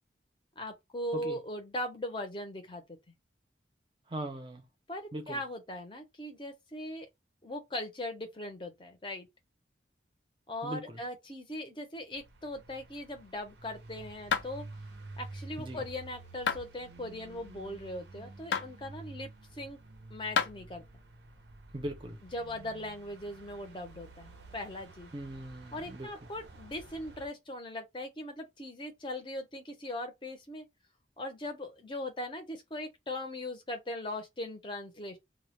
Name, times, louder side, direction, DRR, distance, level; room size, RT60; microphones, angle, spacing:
voice 1, 0.6-3.0 4.9-7.1 7.4-9.3 10.5-14.6 15.2-19.8 20.1-20.8 22.3-25.1 25.7-30.7 31.2-35.2, left 1 dB, 25° left, 0.6 m, -39 dB
voice 2, 4.1-4.6 5.1-5.4 10.6-11.0 15.6-15.8 21.7-22.2 25.1-26.1, right 1 dB, 25° right, 0.5 m, -39 dB
sound 1, 12.1-27.3, right 2 dB, 70° right, 0.5 m, -50 dB
sound 2, 14.3-14.5 16.5-16.7 18.5-18.7 20.4-20.5, left 7 dB, 70° left, 0.3 m, -29 dB
2.2 x 2.1 x 2.9 m
head